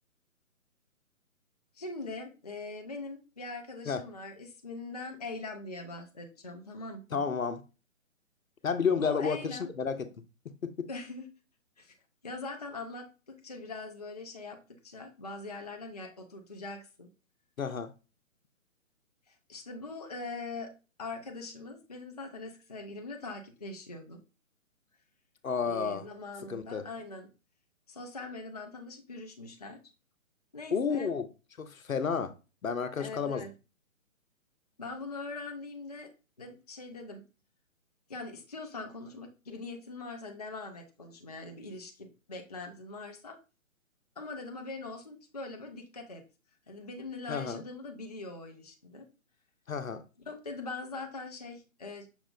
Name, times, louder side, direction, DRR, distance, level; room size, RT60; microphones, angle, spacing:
voice 1, 1.7-7.2 9.0-9.7 10.9-11.3 11.8-12.0 12.2-17.1 19.3-20.7 21.0-24.2 25.6-27.3 27.9-29.8 30.5-31.1 33.0-33.5 34.8-36.1 36.4-37.2 38.1-43.4 44.2-46.2 46.7-49.1 50.3-52.1, left 3 dB, 30° left, 0.4 m, -42 dB
voice 2, 7.1-7.6 8.6-10.1 10.6-10.9 17.6-17.9 25.4-26.1 26.5-26.9 30.7-31.3 31.6-32.3 32.6-33.5 47.3-47.6 49.7-50.0, left 6 dB, 80° left, 0.7 m, -31 dB
5.9 x 2.0 x 3.8 m
figure-of-eight pair, 135°, 40 cm